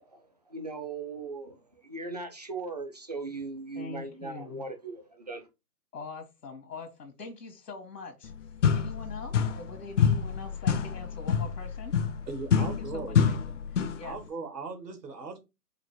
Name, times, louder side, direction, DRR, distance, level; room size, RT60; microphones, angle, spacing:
voice 1, 0.0-5.4, right 3 dB, 30° right, 0.4 m, -39 dB
voice 2, 3.7-4.6 5.9-8.3 8.7-12.0 12.6-14.2, left 4 dB, 75° left, 1.4 m, -43 dB
sound 1, 8.2-8.3 8.6-9.7 10.0-14.1, left 7 dB, 50° left, 0.5 m, -27 dB
voice 3, 12.3-13.2 14.0-15.4, right 4 dB, 90° right, 1.7 m, -38 dB
4.9 x 2.1 x 4.4 m
hypercardioid pair, 145°, 48 cm